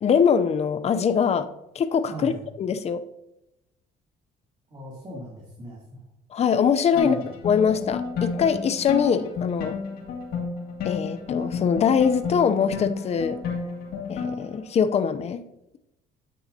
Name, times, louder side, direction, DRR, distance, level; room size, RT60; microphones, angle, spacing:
voice 1, 0.0-1.5 1.7-2.3 2.6-3.0 6.3-7.2 7.4-9.8 10.8-13.4 14.1-15.4, left 7 dB, 40° left, 10 dB, 0.6 m, -22 dB
voice 2, 4.7-6.0 6.9-7.2, equal, 25° right, -5 dB, 2.8 m, -38 dB
sound 1, 7.0-14.6, left 5 dB, 65° left, 2.0 m, -31 dB
9.1 x 8.6 x 2.8 m, 0.88 s
cardioid pair, 110°, 17 cm